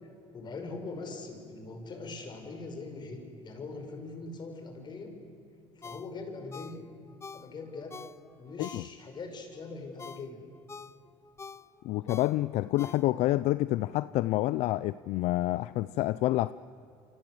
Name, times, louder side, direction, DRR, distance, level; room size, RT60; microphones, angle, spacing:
voice 1, 0.3-5.2 5.8-6.9 7.3-8.0 8.4-10.4, left 3 dB, 40° left, 5.8 m, -42 dB
Ringtone, 5.8-9.3 9.7-13.4 13.8-13.9, left 5 dB, 20° left, 0.7 m, -47 dB
voice 2, 11.8-16.5, left 16 dB, 70° left, 0.6 m, -28 dB
28.5 x 25.0 x 8.0 m
supercardioid pair, 100°, 12 cm